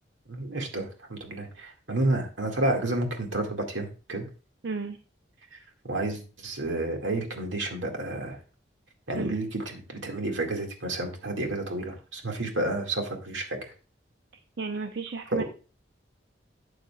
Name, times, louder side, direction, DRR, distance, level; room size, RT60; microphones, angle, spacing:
voice 1, 0.3-4.3 5.8-8.4 9.1-13.7 15.3-15.4, right 2 dB, 90° right, 3 dB, 2.0 m, -30 dB
voice 2, 4.6-5.0 9.1-9.4 14.6-15.4, right 4 dB, 65° right, 7 dB, 0.6 m, -33 dB
12.0 x 7.8 x 2.3 m, 0.34 s
head